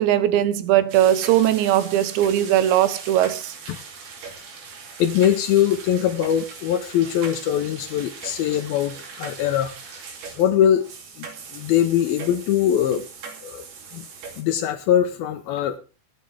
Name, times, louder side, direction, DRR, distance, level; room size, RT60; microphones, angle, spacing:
voice 1, 0.0-3.5, right 12 dB, 85° right, 3.3 m, -19 dB
sound 1, 0.9-14.4, right 5 dB, 65° right, 4.4 m, -40 dB
voice 2, 5.0-9.7 10.4-10.9 11.2-11.3 11.5-13.0 13.4-13.6 13.9-14.1 14.4-15.8, left 10 dB, 75° left, 2.3 m, -21 dB
21.5 x 8.9 x 3.4 m
omnidirectional pair, 5.1 m